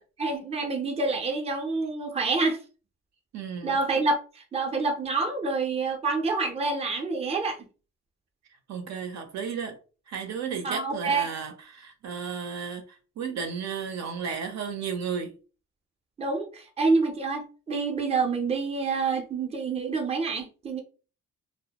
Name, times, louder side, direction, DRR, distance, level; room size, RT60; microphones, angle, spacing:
voice 1, 0.2-2.6 3.6-7.6 10.6-11.3 16.2-20.8, right 3 dB, 20° right, 0.6 m, -27 dB
voice 2, 3.3-3.8 8.7-9.8 10.1-12.8 13.2-15.3, right 6 dB, 65° right, 0.7 m, -33 dB
2.1 x 2.1 x 2.8 m
cardioid pair, 90°, 30 cm